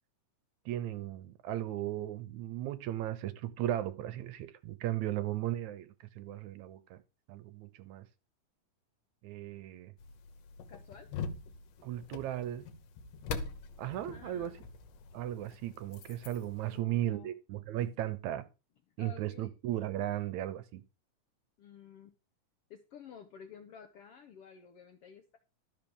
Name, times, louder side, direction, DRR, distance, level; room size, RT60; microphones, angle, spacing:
voice 1, 0.7-7.0 7.3-8.1 9.2-9.9 11.8-12.7 13.8-14.6 15.1-18.5 19.0-20.8, right 13 dB, 75° right, 1.9 m, -36 dB
sound 1, 10.0-16.8, left 4 dB, 85° left, 2.7 m, -44 dB
voice 2, 10.7-11.1 14.1-14.6 16.7-17.4 19.0-19.5 21.6-22.1 22.7-25.4, left 7 dB, 70° left, 1.4 m, -52 dB
12.0 x 5.0 x 7.0 m
omnidirectional pair, 3.7 m